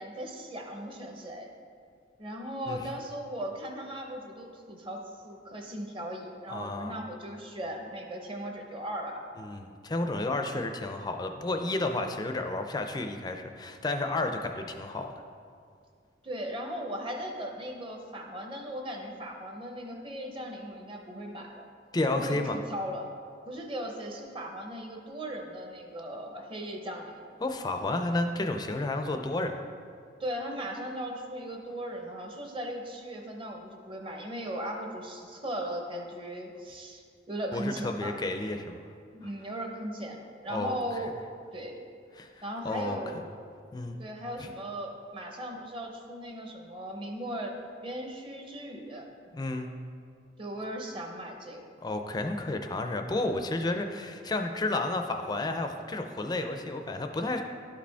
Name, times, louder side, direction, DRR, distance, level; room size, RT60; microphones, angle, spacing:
voice 1, 0.0-1.5 2.2-9.2 16.2-21.7 22.1-23.1 23.5-27.2 30.2-38.2 39.1-41.2 41.5-41.8 42.4-43.2 44.0-47.6 47.8-49.0 50.4-51.6, equal, 30° right, 2 dB, 0.8 m, -38 dB
voice 2, 6.5-7.0 9.4-15.1 21.9-22.6 27.4-29.6 37.5-38.8 40.5-40.8 42.2-43.0 43.7-44.0 44.4-44.5 49.3-49.7 51.8-57.4, left 2 dB, 25° left, 5 dB, 0.4 m, -31 dB
11.5 x 5.0 x 3.5 m, 2.2 s
head